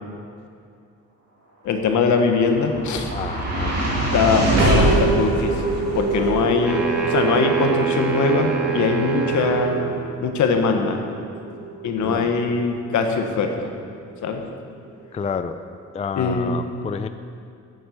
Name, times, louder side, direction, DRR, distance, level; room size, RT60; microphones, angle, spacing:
voice 1, 1.6-3.1 4.1-5.6 5.9-11.0 11.8-13.7 14.2-14.4 16.2-16.6, left 5 dB, 70° left, 4 dB, 1.3 m, -22 dB
sound 1, 2.0-14.4, right 2 dB, 55° right, 2.7 m, -25 dB
voice 2, 3.1-3.7 6.2-6.5 12.0-12.3 15.1-15.6 15.9-17.1, left 6 dB, 20° left, 10 dB, 0.4 m, -29 dB
sound 2, 6.6-10.0, right 7 dB, 5° right, 1.9 m, -25 dB
9.5 x 7.8 x 6.7 m, 2.4 s
cardioid pair, 90°, 30 cm